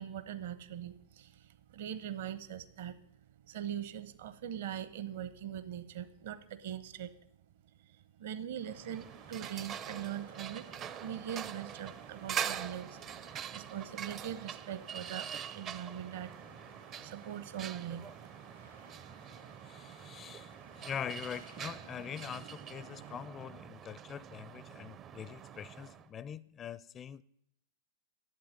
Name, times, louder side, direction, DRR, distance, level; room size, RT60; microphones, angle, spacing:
voice 1, 0.0-3.0 3.5-7.1 7.8-16.4 17.0-18.3, right 10 dB, 55° right, 1.0 m, -42 dB
sound 1, 8.6-26.1, right 8 dB, 30° right, 0.5 m, -44 dB
sound 2, 8.6-23.2, right 3 dB, 80° right, 3.2 m, -57 dB
voice 2, 19.6-27.2, left 8 dB, 25° left, 0.4 m, -43 dB
12.0 x 8.2 x 9.5 m
figure-of-eight pair, 95°, 0 cm